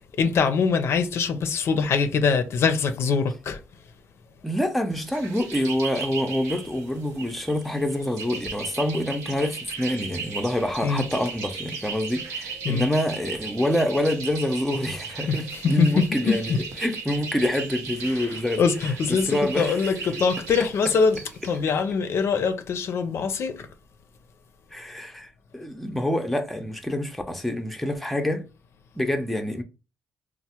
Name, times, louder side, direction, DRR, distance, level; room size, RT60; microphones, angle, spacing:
voice 1, 0.2-3.6 10.8-11.0 12.6-12.9 15.3-15.4 15.6-16.6 18.2-21.2 21.4-23.5, left 5 dB, 60° left, 0.5 m, -23 dB
voice 2, 4.4-18.6 19.1-20.0 24.7-25.3 25.5-28.5 29.0-29.6, left 1 dB, ahead, 0.6 m, -26 dB
sound 1, 4.9-21.6, right 5 dB, 90° right, 0.8 m, -37 dB
3.0 x 2.0 x 2.9 m
cardioid pair, 80°, 5 cm